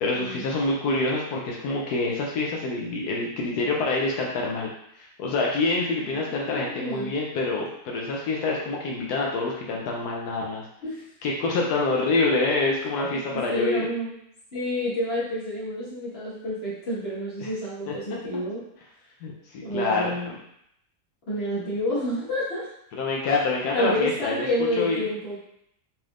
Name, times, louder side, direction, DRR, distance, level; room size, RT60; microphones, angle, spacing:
voice 1, 0.0-4.7 5.0-10.6 11.2-13.8 17.4-17.5 17.9-18.0 19.2-20.3 22.9-24.5 24.7-25.0, left 3 dB, 85° left, -2 dB, 1.2 m, -26 dB
voice 2, 6.4-7.1 10.8-11.0 13.1-14.1 14.5-18.6 19.6-20.4 21.3-22.7 23.7-25.4, left 1 dB, 45° left, -9 dB, 1.8 m, -29 dB
4.2 x 3.3 x 2.4 m, 0.74 s
omnidirectional pair, 1.6 m